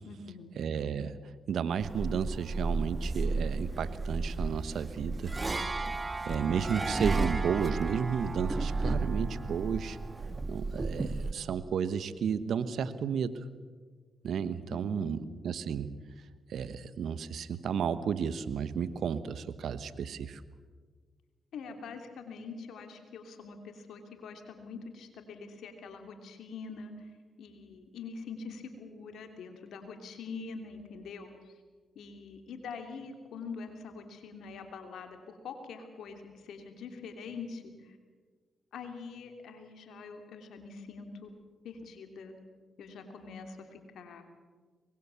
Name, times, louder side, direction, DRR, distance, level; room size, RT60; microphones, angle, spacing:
voice 1, 0.0-0.5 14.7-15.4 21.5-27.1 27.4-31.5 31.9-38.0 38.7-42.3 42.8-44.2, left 4 dB, 75° left, 5 dB, 3.0 m, -44 dB
voice 2, 0.6-1.2 1.5-5.3 5.8-5.9 6.3-10.0 10.5-13.4 14.2-15.2 15.4-16.0 16.5-20.4, right 7 dB, 70° right, 14 dB, 1.2 m, -32 dB
sound 1, 1.8-11.3, right 3 dB, 30° right, 1.6 m, -33 dB
24.5 x 21.0 x 7.1 m, 1.5 s
supercardioid pair, 45°, 0 cm